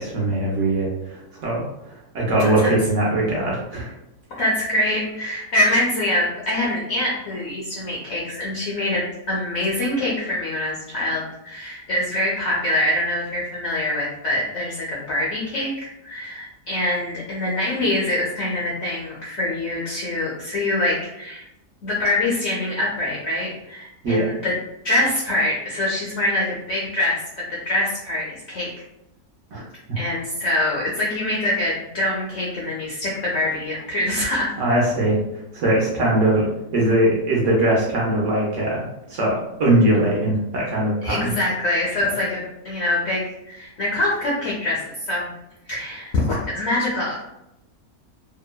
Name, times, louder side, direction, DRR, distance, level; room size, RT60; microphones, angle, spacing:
voice 1, 0.0-1.6 2.1-3.9 24.0-24.3 29.5-29.6 34.6-35.2 35.5-36.5 36.7-41.3, right 1 dB, 60° right, -4 dB, 0.9 m, -21 dB
voice 2, 2.4-2.8 4.4-21.4 21.8-24.6 24.8-28.7 29.9-34.5 41.0-45.3 45.7-47.3, left 1 dB, 65° left, -5 dB, 0.7 m, -24 dB
2.9 x 2.2 x 2.2 m, 0.86 s
omnidirectional pair, 1.7 m